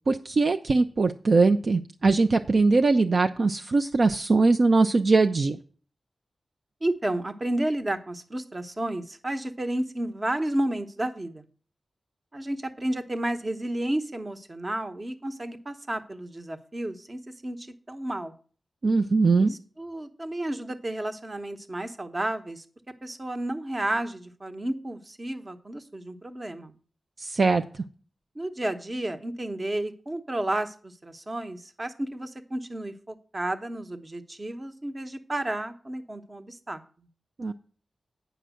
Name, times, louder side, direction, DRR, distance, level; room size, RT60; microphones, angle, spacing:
voice 1, 0.1-5.6 18.8-19.5 27.2-27.6 37.4-37.5, right 3 dB, 55° right, 6 dB, 0.5 m, -21 dB
voice 2, 6.8-11.5 12.3-18.3 19.4-22.6 23.0-26.7 28.3-37.1, right 1 dB, 30° right, 8 dB, 1.0 m, -32 dB
9.1 x 5.7 x 6.3 m, 0.41 s
wide cardioid pair, 115°, 0 cm